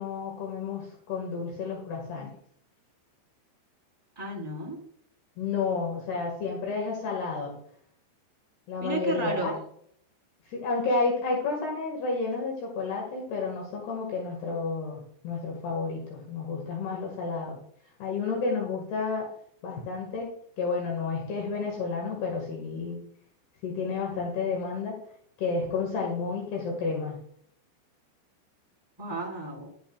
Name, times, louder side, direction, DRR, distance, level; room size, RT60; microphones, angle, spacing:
voice 1, 0.0-2.3 5.4-7.5 8.7-9.5 10.5-17.6 18.0-19.3 19.6-20.3 20.6-23.0 23.6-25.0 25.4-27.2, left 4 dB, 65° left, -1 dB, 3.7 m, -31 dB
voice 2, 4.2-4.8 8.8-9.6 29.0-29.7, right 3 dB, 5° right, -5 dB, 3.5 m, -32 dB
13.0 x 8.0 x 2.4 m, 0.64 s
omnidirectional pair, 5.0 m